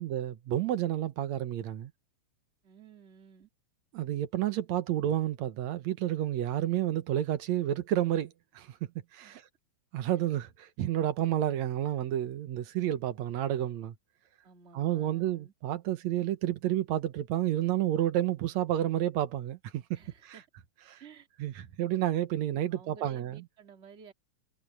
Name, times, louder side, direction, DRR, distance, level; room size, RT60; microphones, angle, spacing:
voice 1, 0.0-1.9 3.9-8.8 9.1-9.4 9.9-14.0 14.7-20.4 20.9-21.0 21.4-23.4, right 12 dB, 65° right, 2.2 m, -30 dB
voice 2, 2.6-3.5 9.2-9.4 10.1-10.3 14.4-15.5 19.9-20.5 21.0-21.3 22.7-24.1, right 5 dB, 25° right, 2.1 m, -53 dB
omnidirectional pair, 3.7 m